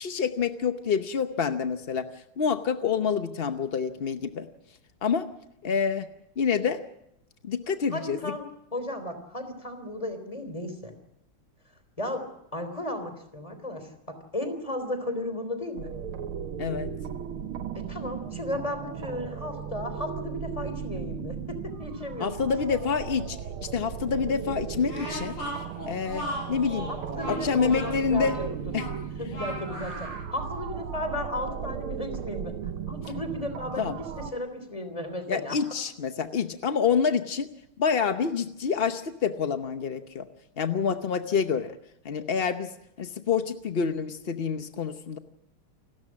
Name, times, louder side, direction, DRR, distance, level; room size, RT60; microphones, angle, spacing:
voice 1, 0.0-2.1 2.4-4.5 5.0-5.3 5.6-6.1 6.4-6.8 7.4-8.3 16.6-16.9 22.2-23.4 23.7-25.3 25.9-26.9 27.3-28.4 28.7-28.9 33.8-33.9 35.3-37.5 37.8-40.3 40.6-41.7 42.0-42.7 43.0-45.2, left 6 dB, 70° left, 9 dB, 0.5 m, -27 dB
voice 2, 7.9-8.5 8.7-10.9 12.0-15.9 17.7-22.5 26.9-28.6 29.2-32.5 32.9-35.6, left 1 dB, 15° left, 8 dB, 3.5 m, -35 dB
sound 1, 15.8-34.3, right 8 dB, 75° right, 2.0 m, -36 dB
Speech, 24.8-30.2, equal, 85° left, 6.8 m, -37 dB
29.0 x 13.0 x 7.4 m, 0.81 s
omnidirectional pair, 2.4 m